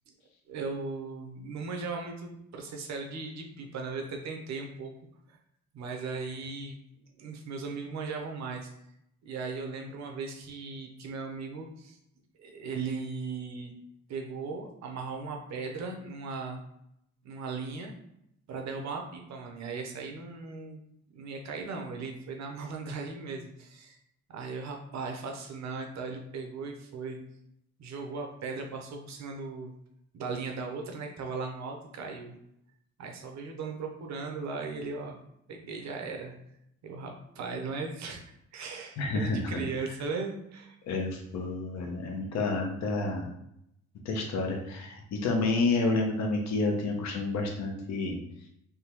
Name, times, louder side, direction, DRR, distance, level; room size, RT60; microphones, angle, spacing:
voice 1, 0.5-4.9 5.3-5.4 5.7-6.8 7.2-8.7 9.2-12.0 12.4-13.7 14.1-16.6 17.2-17.9 18.5-20.8 21.1-24.0 24.3-27.2 27.8-29.7 30.1-32.3 33.0-35.2 35.5-36.3 36.8-38.2 38.5-40.8, right 4 dB, 65° right, 2 dB, 0.7 m, -37 dB
voice 2, 39.0-39.6 40.9-43.3 44.0-48.2, left 3 dB, 65° left, 2 dB, 0.7 m, -29 dB
3.5 x 2.2 x 2.9 m, 0.77 s
cardioid pair, 90°, 30 cm